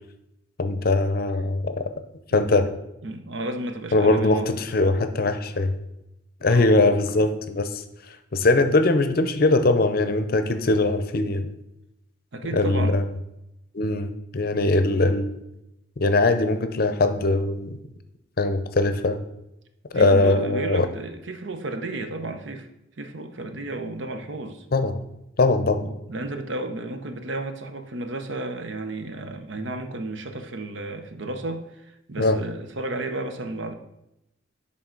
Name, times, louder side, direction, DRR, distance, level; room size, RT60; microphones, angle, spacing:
voice 1, 0.6-1.8 2.3-2.7 3.9-5.7 6.4-7.8 8.3-11.5 12.5-13.0 13.7-15.3 16.0-17.8 18.4-19.2 19.9-20.9 24.7-24.9 25.4-25.8 32.2-32.4, left 2 dB, 50° left, 9 dB, 0.6 m, -21 dB
voice 2, 3.0-4.6 6.4-6.8 12.3-13.0 19.9-22.7 23.0-24.7 25.8-33.7, right 2 dB, 75° right, 7 dB, 0.8 m, -33 dB
10.5 x 3.8 x 3.8 m, 0.86 s
head